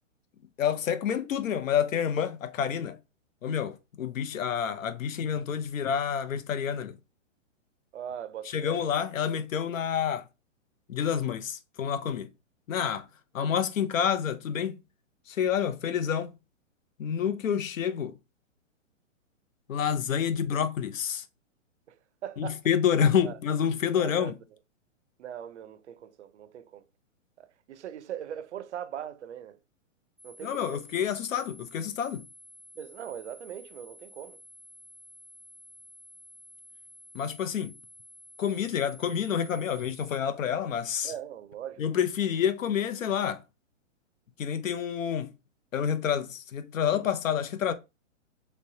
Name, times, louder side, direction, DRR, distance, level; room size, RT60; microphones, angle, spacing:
voice 1, 0.6-3.0 3.4-7.0 8.5-10.3 10.9-12.3 12.7-13.0 13.3-14.8 15.3-16.3 17.0-18.2 19.7-21.2 22.4-24.3 30.4-32.2 37.1-37.7 38.4-41.1 41.8-43.4 44.4-45.3 45.7-47.7, left 8 dB, 80° left, 0.7 m, -28 dB
voice 2, 7.9-8.8 21.9-22.0 22.2-22.6 23.2-23.4 23.9-24.4 25.2-26.8 27.4-29.6 30.2-30.8 32.8-34.4 41.0-41.8, right 9 dB, 60° right, 0.5 m, -40 dB
sound 1, 30.2-40.2, left 1 dB, ahead, 0.5 m, -52 dB
3.3 x 3.1 x 2.7 m
hypercardioid pair, 170°, 39 cm